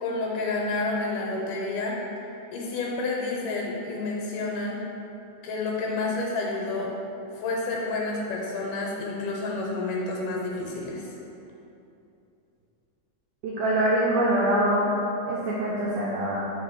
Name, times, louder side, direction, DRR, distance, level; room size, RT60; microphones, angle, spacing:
voice 1, 0.0-2.0 2.5-4.8 5.4-6.9 7.4-11.1, left 3 dB, 85° left, -2 dB, 2.2 m, -29 dB
voice 2, 13.4-14.9 15.3-16.4, right 1 dB, 85° right, -6 dB, 1.5 m, -24 dB
5.3 x 3.6 x 5.1 m, 2.8 s
omnidirectional pair, 3.8 m